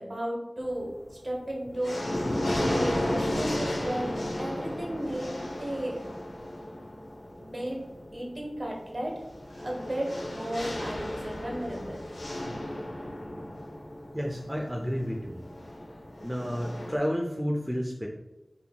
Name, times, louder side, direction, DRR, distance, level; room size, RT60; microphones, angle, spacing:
voice 1, 0.0-6.0 7.4-7.8 8.1-9.2 9.5-12.0 13.0-13.6, right 1 dB, 45° right, -1 dB, 1.1 m, -35 dB
sound 1, 0.6-1.1 1.5-17.0, left 1 dB, 85° left, 0.6 m, -34 dB
voice 2, 14.1-15.4 16.2-18.1, equal, 10° right, -1 dB, 0.4 m, -31 dB
5.3 x 2.8 x 2.2 m, 0.99 s
wide cardioid pair, 45°, 0 cm